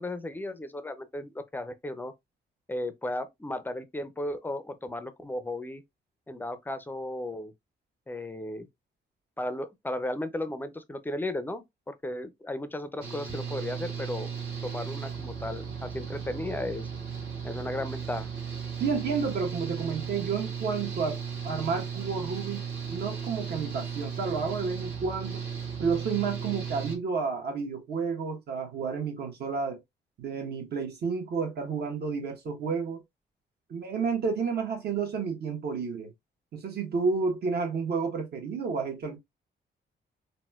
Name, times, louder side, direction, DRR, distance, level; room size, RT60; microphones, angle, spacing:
voice 1, 0.0-2.1 2.7-5.8 6.3-7.5 8.1-8.7 9.4-14.3 14.6-16.9 17.4-18.3, left 1 dB, 10° left, 0.4 m, -35 dB
Engine / Mechanical fan, 13.0-26.9, right 7 dB, 80° right, 1.3 m, -36 dB
voice 2, 18.8-22.6 22.9-25.4 25.8-29.8 30.2-33.0 33.7-36.1 36.5-39.2, right 5 dB, 60° right, 1.1 m, -31 dB
4.1 x 2.1 x 2.3 m
cardioid pair, 95°, 19 cm